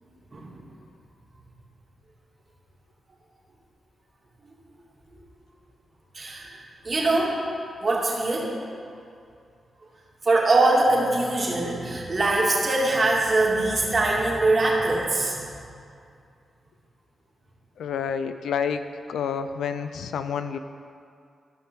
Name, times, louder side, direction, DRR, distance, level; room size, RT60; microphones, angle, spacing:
voice 1, 0.3-0.6 6.1-6.6 6.8-7.4 7.8-8.5 10.2-15.5, right 2 dB, 45° right, -3 dB, 2.4 m, -22 dB
voice 2, 17.8-20.6, left 7 dB, 85° left, 10 dB, 0.4 m, -29 dB
15.0 x 5.8 x 3.7 m, 2.4 s
supercardioid pair, 45°, 0 cm